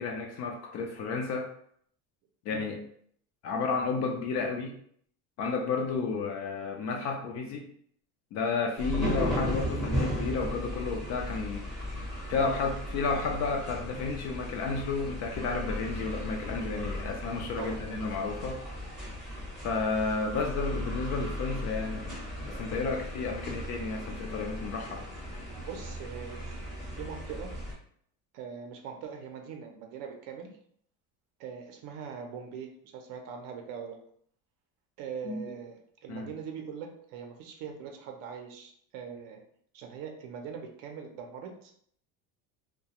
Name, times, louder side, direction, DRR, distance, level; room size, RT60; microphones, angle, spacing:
voice 1, 0.0-1.5 2.5-2.8 3.4-4.7 5.4-7.7 8.3-11.8 12.3-18.6 19.6-22.2 22.4-25.0 35.2-35.4 36.1-36.3, left 4 dB, 45° left, 3 dB, 0.4 m, -32 dB
sound 1, 8.8-27.7, equal, ahead, 0.6 m, -36 dB
voice 2, 17.6-18.1 25.5-26.6 26.9-27.5 28.3-30.5 31.4-34.0 35.0-39.4 39.7-41.7, right 7 dB, 55° right, 4 dB, 0.5 m, -42 dB
2.3 x 2.1 x 2.8 m, 0.63 s
cardioid pair, 145°, 39 cm